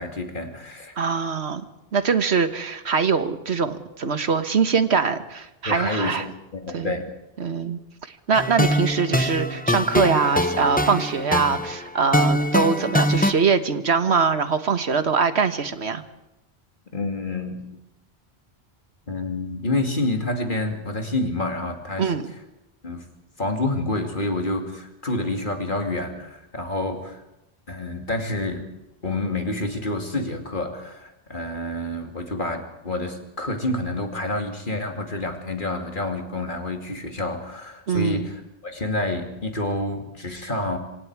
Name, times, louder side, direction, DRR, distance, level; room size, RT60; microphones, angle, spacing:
voice 1, 0.0-0.9 5.6-6.3 6.5-7.1 16.9-17.7 19.1-22.1 22.8-23.0 23.4-27.2 27.7-28.7 29.0-40.8, left 2 dB, 50° left, 4 dB, 2.8 m, -28 dB
voice 2, 1.0-1.6 1.9-6.3 6.7-7.0 7.4-7.8 8.3-16.0 22.0-22.3 37.9-38.3, right 5 dB, 85° right, 10 dB, 1.6 m, -23 dB
sound 1, 8.3-13.3, equal, 10° left, 1.0 m, -23 dB
26.0 x 26.0 x 4.8 m, 0.92 s
omnidirectional pair, 1.1 m